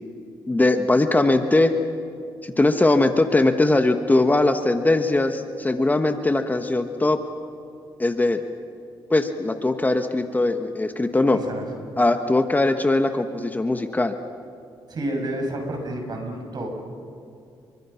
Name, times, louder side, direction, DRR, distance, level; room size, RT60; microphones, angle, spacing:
voice 1, 0.5-1.7 2.4-7.2 8.0-8.4 9.1-11.4 12.0-14.1, left 2 dB, 20° left, 7 dB, 1.3 m, -20 dB
voice 2, 14.9-16.7, right 1 dB, 50° right, 2 dB, 7.2 m, -29 dB
30.0 x 24.5 x 5.8 m, 2.5 s
cardioid pair, 75°, 9 cm